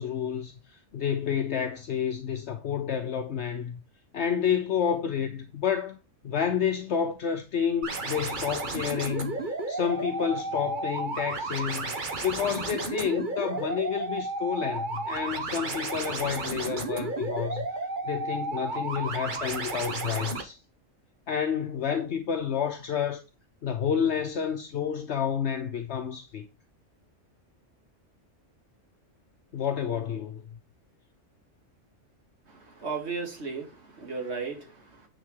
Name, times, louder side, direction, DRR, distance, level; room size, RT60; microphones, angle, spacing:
voice 1, 0.0-3.8 4.1-6.0 6.2-17.7 18.0-20.6 21.3-23.2 23.6-26.5 29.5-30.4, left 8 dB, 65° left, 1.1 m, -30 dB
sound 1, 7.8-20.4, right 3 dB, 40° right, 1.3 m, -33 dB
voice 2, 32.5-35.1, right 4 dB, 60° right, 2.2 m, -35 dB
9.2 x 4.3 x 3.7 m
omnidirectional pair, 1.3 m